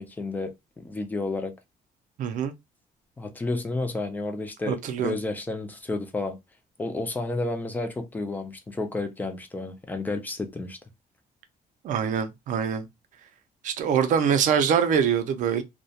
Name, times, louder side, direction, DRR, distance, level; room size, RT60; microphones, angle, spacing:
voice 1, 0.0-1.5 3.2-6.4 6.8-10.8, left 2 dB, 10° left, 0.3 m, -31 dB
voice 2, 2.2-2.5 4.7-5.2 11.8-12.9 13.6-15.6, right 7 dB, 55° right, 0.4 m, -24 dB
2.3 x 2.1 x 2.6 m
cardioid pair, 175°, 16 cm